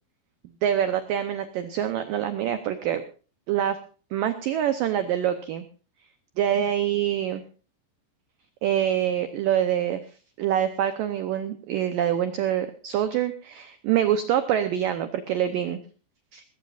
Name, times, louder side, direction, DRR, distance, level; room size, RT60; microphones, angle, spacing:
voice 1, 0.6-3.0 3.5-3.8 4.1-5.6 6.4-7.4 8.6-10.0 10.4-15.8 16.3-16.4, right 10 dB, 90° right, 9 dB, 1.9 m, -25 dB
19.0 x 16.5 x 2.5 m, 0.37 s
omnidirectional pair, 5.2 m